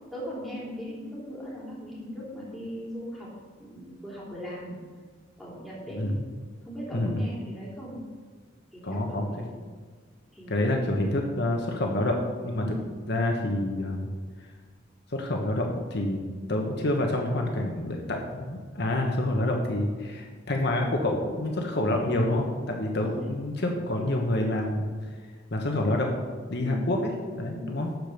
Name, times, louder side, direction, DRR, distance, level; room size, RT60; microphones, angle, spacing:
voice 1, 0.1-3.3 3.6-4.8 5.4-6.0 6.6-8.0 8.7-9.5 10.3-11.0 12.6-12.8 22.8-23.3 26.6-26.9 27.5-27.8, equal, ahead, -6 dB, 3.4 m, -39 dB
voice 2, 5.9-6.2 6.9-7.3 8.8-9.4 10.5-12.2 12.4-12.6 13.1-14.1 15.1-16.2 16.5-24.9 25.5-26.1 26.5-27.0 27.4-27.9, left 1 dB, 60° left, 1 dB, 1.3 m, -27 dB
12.5 x 5.3 x 6.9 m, 1.5 s
head